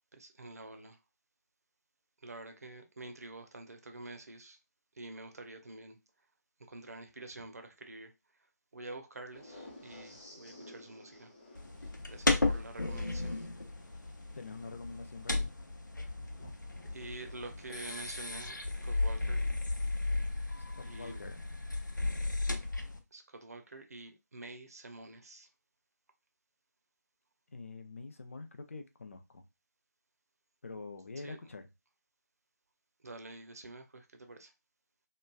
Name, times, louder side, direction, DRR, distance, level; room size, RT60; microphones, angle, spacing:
voice 1, 0.1-1.0 2.2-4.6 5.0-6.0 6.7-8.1 8.7-11.3 12.1-13.5 16.9-19.4 20.9-21.2 23.1-25.5 31.2-31.5 33.0-34.5, right 2 dB, 55° right, 0.6 m, -47 dB
sound 1, 9.3-19.8 22.1-22.3, left 1 dB, 25° left, 1.1 m, -56 dB
sound 2, 11.5-23.0, left 2 dB, 85° left, 0.6 m, -35 dB
voice 2, 14.3-15.5 20.8-21.4 27.5-29.4 30.6-31.7, left 3 dB, 45° left, 0.4 m, -45 dB
3.0 x 2.3 x 2.3 m
figure-of-eight pair, 155°, 10 cm